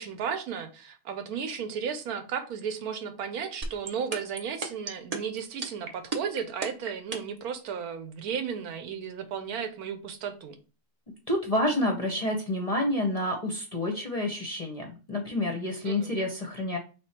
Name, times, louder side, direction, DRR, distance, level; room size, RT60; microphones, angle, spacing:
voice 1, 0.0-10.6 15.8-16.1, right 7 dB, 80° right, 8 dB, 1.2 m, -34 dB
sound 1, 3.6-7.4, right 3 dB, 45° right, 0.5 m, -32 dB
voice 2, 11.3-16.8, left 1 dB, 35° left, 1 dB, 0.6 m, -29 dB
3.4 x 3.1 x 4.2 m, 0.34 s
omnidirectional pair, 1.6 m